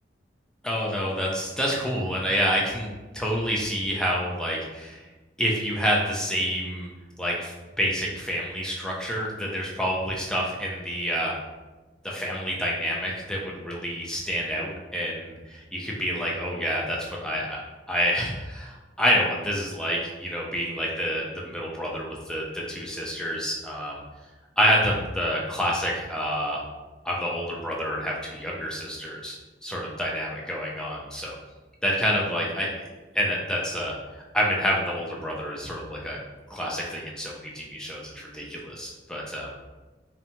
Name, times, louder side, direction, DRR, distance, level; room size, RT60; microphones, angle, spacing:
voice 1, 0.6-5.0 5.4-6.9 7.2-11.3 12.0-17.6 17.9-24.0 24.6-26.6 27.0-29.4 29.6-31.4 31.8-32.9 33.1-33.9 34.3-36.2 36.5-39.5, equal, 5° left, -3 dB, 0.3 m, -28 dB
2.6 x 2.1 x 2.8 m, 1.2 s
head